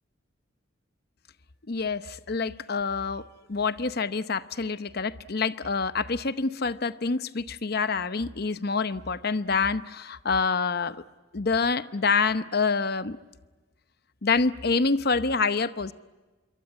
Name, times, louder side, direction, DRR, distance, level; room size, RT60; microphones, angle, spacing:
voice 1, 1.7-3.2 3.5-11.0 11.3-13.2 14.2-15.9, left 4 dB, 50° left, 13 dB, 0.8 m, -27 dB
26.5 x 23.0 x 9.7 m, 1.2 s
head